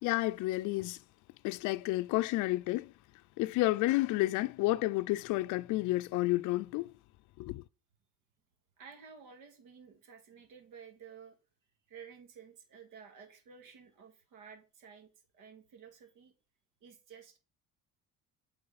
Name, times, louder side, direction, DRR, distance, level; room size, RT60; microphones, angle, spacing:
voice 1, 0.0-1.0 1.4-2.9 3.4-6.9 7.4-7.6, left 18 dB, 70° left, 0.4 m, -30 dB
voice 2, 8.8-11.4 11.9-16.3 16.8-17.4, right 6 dB, 75° right, 2.0 m, -53 dB
8.5 x 4.4 x 4.1 m
cardioid pair, 105°, 32 cm